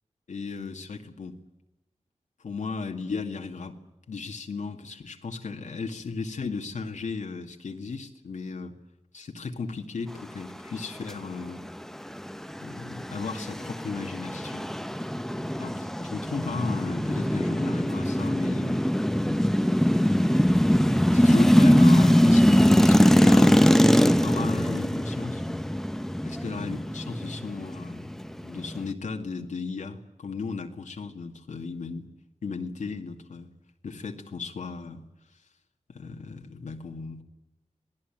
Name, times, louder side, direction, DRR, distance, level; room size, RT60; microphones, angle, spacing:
voice 1, 0.3-1.4 2.4-3.8 4.1-8.7 9.1-11.6 12.6-14.7 15.6-18.8 19.9-20.6 21.1-25.6 26.2-32.1 32.4-33.5 33.8-35.0 35.3-35.4 35.9-37.2, left 4 dB, 85° left, 2.2 m, -36 dB
sound 1, 12.2-28.9, equal, 5° left, 0.9 m, -22 dB
27.0 x 18.5 x 9.1 m
wide cardioid pair, 95°, 12 cm